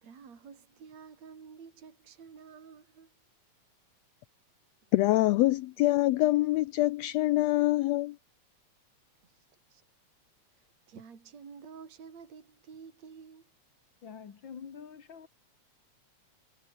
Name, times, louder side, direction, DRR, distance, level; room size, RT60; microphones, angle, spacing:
voice 1, 0.0-3.1 9.2-9.8 10.5-13.5, right 6 dB, 65° right, 4.5 m, -51 dB
voice 2, 4.9-8.2, left 17 dB, 80° left, 1.6 m, -25 dB
voice 3, 14.0-15.3, left 7 dB, 45° left, 2.1 m, -46 dB
omnidirectional pair, 3.4 m